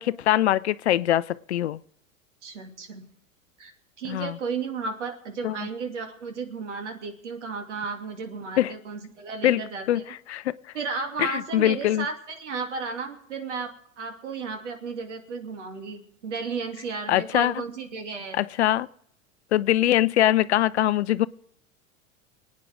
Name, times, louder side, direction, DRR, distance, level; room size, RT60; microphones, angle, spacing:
voice 1, 0.0-1.8 4.0-4.4 5.4-5.6 8.6-8.7 9.4-9.6 9.9-10.0 10.3-10.5 11.2-12.1 17.1-17.5 18.3-18.9 19.5-21.3, left 13 dB, 55° left, 0.6 m, -22 dB
voice 2, 2.4-3.1 3.6-3.7 4.0-10.1 10.7-18.4, right 5 dB, 60° right, 2.6 m, -34 dB
28.0 x 9.4 x 3.6 m
figure-of-eight pair, 85°, 39 cm